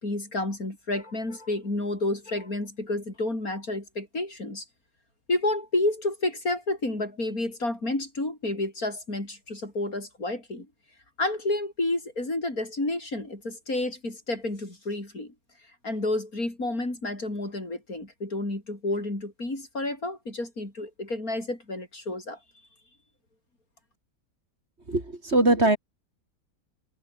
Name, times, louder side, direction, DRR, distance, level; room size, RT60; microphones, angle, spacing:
voice 1, 0.0-4.6 5.3-10.7 11.2-15.3 15.8-22.4, left 2 dB, 75° left, 7.3 m, -30 dB
voice 2, 24.9-25.8, right 2 dB, 45° right, 4.6 m, -21 dB
omnidirectional pair, 1.6 m